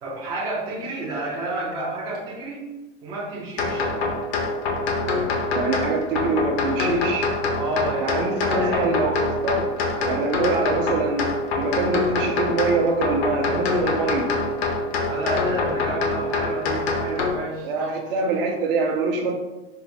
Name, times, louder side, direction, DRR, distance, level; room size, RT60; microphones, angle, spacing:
voice 1, 0.0-2.7 3.0-3.9 7.6-8.9 15.1-18.0, right 2 dB, 10° right, -6 dB, 0.3 m, -30 dB
sound 1, 3.6-17.3, left 3 dB, 80° left, 0.7 m, -25 dB
voice 2, 5.5-7.3 8.0-9.7 10.1-11.3 11.6-14.3 17.6-19.3, right 3 dB, 60° right, 2 dB, 0.6 m, -24 dB
4.4 x 2.1 x 2.5 m, 1.1 s
supercardioid pair, 160°, 31 cm